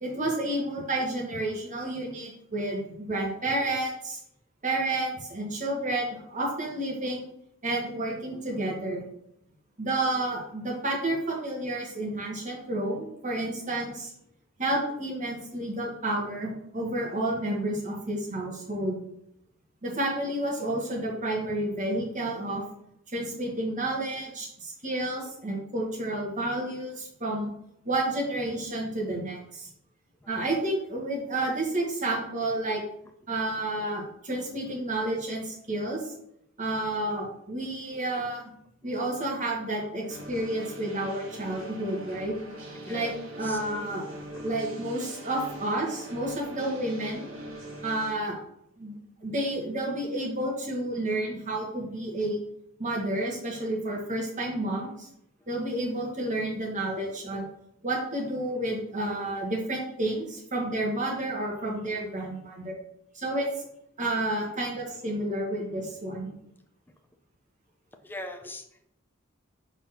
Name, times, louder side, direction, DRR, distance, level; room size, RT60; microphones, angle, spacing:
voice 1, 0.0-4.2 4.6-7.3 7.6-9.1 9.8-14.1 14.6-19.0 19.8-22.6 23.1-27.5 27.8-29.7 30.3-32.8 33.3-36.0 36.6-38.4 38.8-42.3 42.9-44.0 44.4-47.2 47.8-48.3 48.8-48.9 49.2-52.4 52.8-55.1 55.5-57.4 57.8-62.7 63.2-63.5 64.0-66.3, right 1 dB, 40° right, -2 dB, 1.7 m, -30 dB
sound 1, 40.1-48.1, right 1 dB, 80° right, 1.6 m, -42 dB
voice 2, 42.8-43.1 43.4-43.6 44.3-44.4 68.0-68.6, left 1 dB, 10° left, 4 dB, 0.6 m, -39 dB
4.6 x 4.0 x 5.7 m, 0.75 s
head